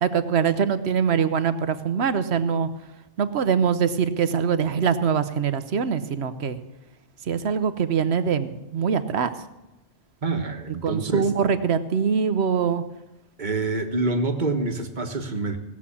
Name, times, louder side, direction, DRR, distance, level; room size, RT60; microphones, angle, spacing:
voice 1, 0.0-2.7 3.2-6.6 7.3-9.3 10.8-12.8, right 6 dB, 65° right, 12 dB, 1.0 m, -23 dB
voice 2, 10.2-11.3 13.4-15.6, right 3 dB, 40° right, 6 dB, 1.4 m, -26 dB
17.0 x 7.3 x 8.5 m, 1.0 s
omnidirectional pair, 1.2 m